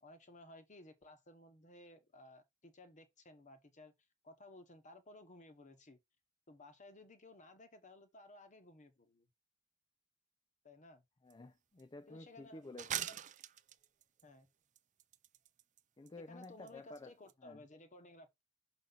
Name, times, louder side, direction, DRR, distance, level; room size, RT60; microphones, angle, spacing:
voice 1, 0.0-3.9 4.2-6.0 6.5-9.3 10.6-11.0 12.1-12.6 13.1-13.2 14.2-14.5 16.3-18.4, left 2 dB, 35° left, 1.1 m, -57 dB
voice 2, 11.2-13.1 16.0-17.1 17.4-17.6, left 2 dB, 20° left, 0.4 m, -52 dB
sound 1, 11.3-11.4 11.8-11.9 12.8-14.2 14.8-15.8 16.1-16.2 16.4-16.7 16.9-17.0 17.3-17.4, right 10 dB, 35° right, 0.4 m, -42 dB
6.4 x 3.9 x 4.0 m
head